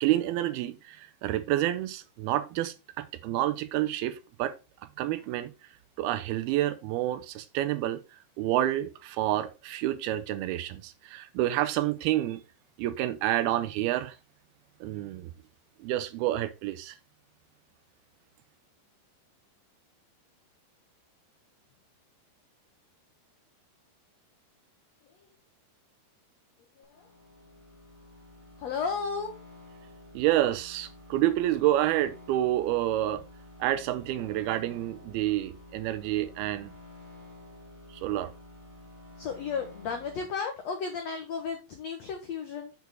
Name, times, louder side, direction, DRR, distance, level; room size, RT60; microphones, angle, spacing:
voice 1, 0.0-4.6 5.0-5.5 6.0-8.0 8.4-12.4 12.8-14.2 14.8-15.3 15.8-17.0 30.1-33.2 33.6-36.7 37.9-38.3, right 14 dB, 85° right, 2.5 m, -28 dB
voice 2, 26.8-27.1 28.6-29.3 39.2-42.7, left 5 dB, 80° left, 1.5 m, -34 dB
sound 1, 26.8-40.2, left 1 dB, 20° right, 3.1 m, -50 dB
7.1 x 6.0 x 4.4 m
omnidirectional pair, 4.6 m